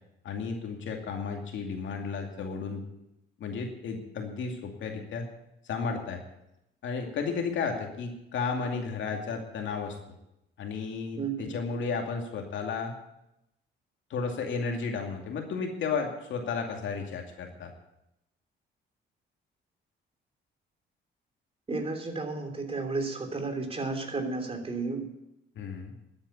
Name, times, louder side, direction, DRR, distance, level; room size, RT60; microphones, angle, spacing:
voice 1, 0.2-2.8 3.4-5.3 5.6-6.2 6.8-10.0 10.6-12.9 14.1-17.7 25.6-25.9, left 5 dB, 70° left, 2 dB, 2.4 m, -33 dB
voice 2, 11.2-11.5 21.7-25.0, right 3 dB, 30° right, 5 dB, 3.1 m, -32 dB
12.5 x 8.8 x 8.5 m, 0.85 s
cardioid pair, 90°, 20 cm